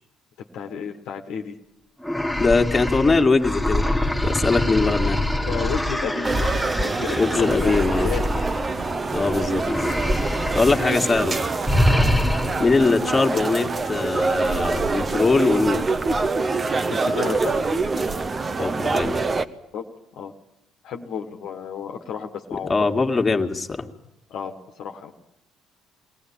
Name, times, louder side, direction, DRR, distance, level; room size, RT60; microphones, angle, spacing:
voice 1, 0.5-1.5 5.5-8.2 9.2-10.0 13.3-13.4 16.9-17.5 19.7-19.9 20.1-20.3 20.8-22.7 24.3-25.2, left 7 dB, 65° left, 3 dB, 1.6 m, -32 dB
sound 1, 2.0-9.2 9.6-10.9 11.1-11.3 11.7-12.8, left 1 dB, ahead, 1.9 m, -24 dB
voice 2, 2.4-3.9 4.2-5.2 7.2-8.1 9.1-9.6 10.5-11.4 12.6-15.8 18.6-19.2 22.5-23.9, left 3 dB, 25° left, 2 dB, 2.2 m, -21 dB
sound 2, 6.2-19.5, right 3 dB, 30° right, 1.2 m, -25 dB
23.0 x 18.0 x 8.8 m, 0.87 s
hypercardioid pair, 55°, 0 cm